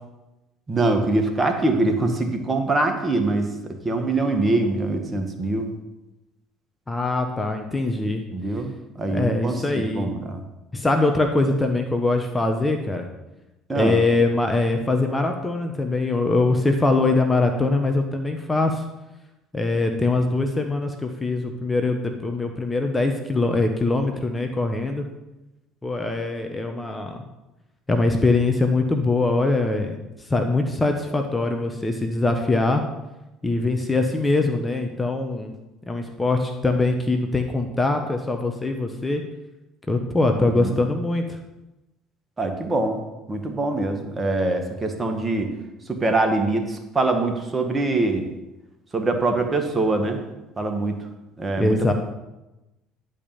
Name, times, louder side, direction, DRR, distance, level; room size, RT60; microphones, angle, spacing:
voice 1, 0.7-5.7 8.3-10.4 13.7-14.0 40.4-40.8 42.4-43.0 43.3-45.5 45.9-48.3 48.9-50.2 50.6-51.0 51.4-51.9, right 2 dB, 25° right, 5 dB, 1.8 m, -23 dB
voice 2, 6.9-8.2 9.1-10.1 10.7-13.1 13.7-18.8 19.5-25.1 25.8-27.2 27.9-30.0 30.3-32.8 33.4-35.5 35.9-39.2 39.9-41.4 51.6-51.9, left 2 dB, 15° left, 4 dB, 1.2 m, -22 dB
10.5 x 5.3 x 7.2 m, 0.99 s
supercardioid pair, 75°, 0 cm